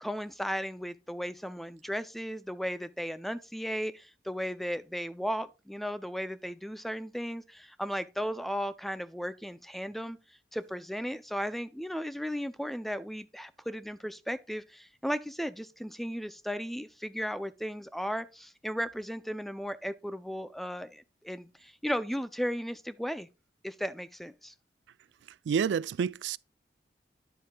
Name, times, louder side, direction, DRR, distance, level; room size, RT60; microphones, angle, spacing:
voice 1, 0.0-10.2 10.5-23.3 23.6-24.5, equal, ahead, 0.4 m, -35 dB
voice 2, 25.5-26.4, right 7 dB, 80° right, 0.3 m, -28 dB
10.0 x 7.5 x 2.2 m
head